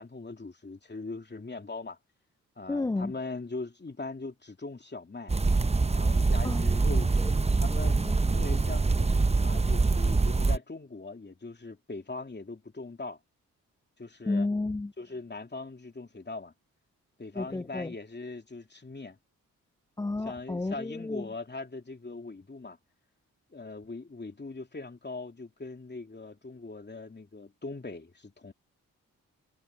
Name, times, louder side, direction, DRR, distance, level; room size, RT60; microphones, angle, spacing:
voice 1, 0.0-2.0 2.6-5.3 5.9-8.0 8.3-13.2 14.0-14.5 15.0-16.5 17.2-19.2 20.2-22.8 23.5-28.5, left 3 dB, 30° left, 2.9 m, -41 dB
voice 2, 2.7-3.1 6.4-6.7 7.7-8.2 14.3-14.9 17.3-17.9 20.0-21.3, left 2 dB, 10° left, 0.4 m, -32 dB
sound 1, 5.3-10.6, right 3 dB, 15° right, 0.8 m, -24 dB
supercardioid pair, 45°, 36 cm